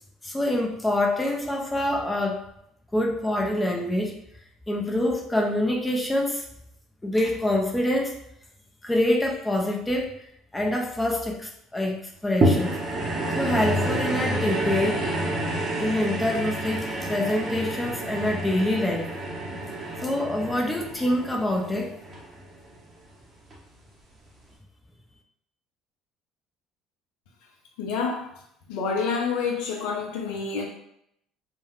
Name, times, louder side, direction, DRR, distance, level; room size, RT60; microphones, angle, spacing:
voice 1, 0.2-2.5 2.9-4.2 4.7-6.4 7.0-8.2 8.8-10.2 10.5-12.8 13.4-15.1 15.8-19.2 20.0-22.0, left 1 dB, 10° left, 0.6 m, -26 dB
sound 1, 12.4-22.9 23.5-23.6, right 1 dB, 35° right, 0.8 m, -28 dB
voice 2, 27.8-28.3 28.7-30.7, left 5 dB, 70° left, 0.5 m, -28 dB
2.2 x 2.1 x 3.5 m
hypercardioid pair, 60°, 0 cm